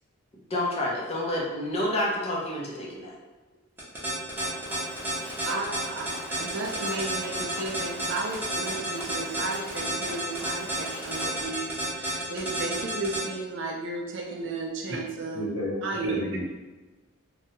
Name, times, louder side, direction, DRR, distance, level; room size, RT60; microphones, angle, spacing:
voice 1, 0.5-3.1, left 1 dB, 30° left, -3 dB, 0.5 m, -29 dB
sound 1, 3.8-13.2, right 1 dB, 10° right, 0.7 m, -30 dB
Mechanisms, 4.3-11.4, equal, 40° right, 0.8 m, -43 dB
voice 2, 5.4-15.4 15.8-16.2, right 3 dB, 55° right, 1 dB, 0.4 m, -34 dB
voice 3, 15.3-16.5, left 1 dB, 75° left, -4 dB, 0.8 m, -31 dB
2.8 x 2.2 x 2.8 m, 1.2 s
head